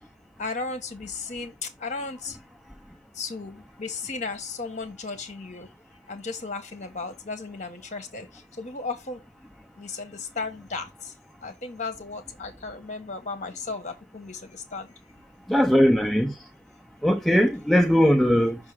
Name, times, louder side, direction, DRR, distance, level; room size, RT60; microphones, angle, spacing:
voice 1, 0.4-2.4 3.1-5.7 6.1-9.2 9.7-11.1 11.4-14.9, left 4 dB, 40° left, 1.4 m, -35 dB
voice 2, 15.5-16.3 17.0-18.6, equal, ahead, 0.5 m, -19 dB
5.8 x 5.5 x 3.4 m
head